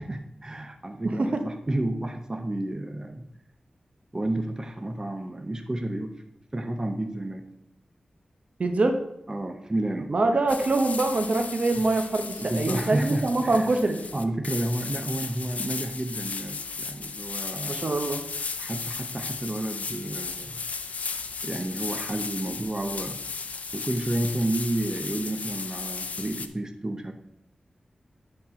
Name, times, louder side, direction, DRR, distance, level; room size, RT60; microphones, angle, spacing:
voice 1, 0.0-3.3 4.1-6.1 6.5-7.4 9.3-10.1 11.7-11.8 12.4-13.7 14.1-17.8 18.6-20.6 21.4-23.2 23.5-27.1, right 1 dB, 25° right, 5 dB, 0.8 m, -31 dB
voice 2, 1.0-1.4 8.6-9.0 10.1-14.0 17.7-18.2, right 2 dB, 60° right, 6 dB, 0.9 m, -24 dB
sound 1, 10.5-26.5, left 5 dB, 75° left, 0.5 m, -35 dB
10.5 x 4.4 x 4.4 m, 0.80 s
wide cardioid pair, 70°, 2 cm